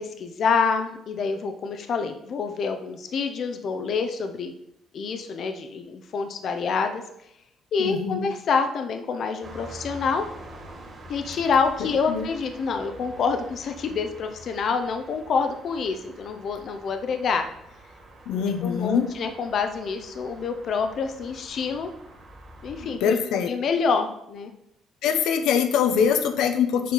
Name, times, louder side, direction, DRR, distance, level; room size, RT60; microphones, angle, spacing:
voice 1, 0.0-4.5 4.9-7.0 7.7-10.2 11.1-17.5 18.3-21.9 22.6-23.1 23.5-24.5, left 5 dB, 45° left, 6 dB, 0.6 m, -27 dB
voice 2, 7.8-8.3 12.1-12.3 18.3-19.1 22.8-23.5 25.0-26.9, left 7 dB, 80° left, 8 dB, 0.7 m, -23 dB
sound 1, 9.4-23.0, right 1 dB, 25° right, 2.0 m, -46 dB
7.4 x 4.2 x 5.5 m, 0.77 s
cardioid pair, 175°, 0 cm